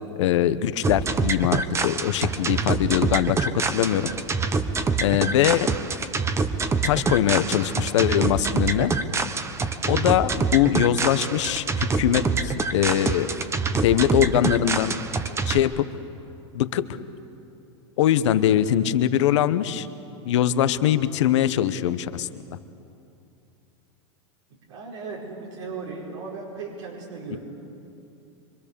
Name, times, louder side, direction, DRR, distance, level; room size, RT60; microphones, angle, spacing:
voice 1, 0.2-4.1 5.0-5.7 6.8-8.9 9.9-13.3 13.7-15.0 15.4-15.9 16.5-16.9 18.0-19.9 20.2-22.3 27.3-27.4, left 11 dB, 75° left, 12 dB, 1.1 m, -22 dB
sound 1, 0.8-15.6, right 4 dB, 15° right, 1.2 m, -26 dB
voice 2, 24.7-27.4, right 4 dB, 80° right, -4 dB, 5.1 m, -36 dB
25.0 x 23.5 x 7.0 m, 2.7 s
hypercardioid pair, 120°, 15 cm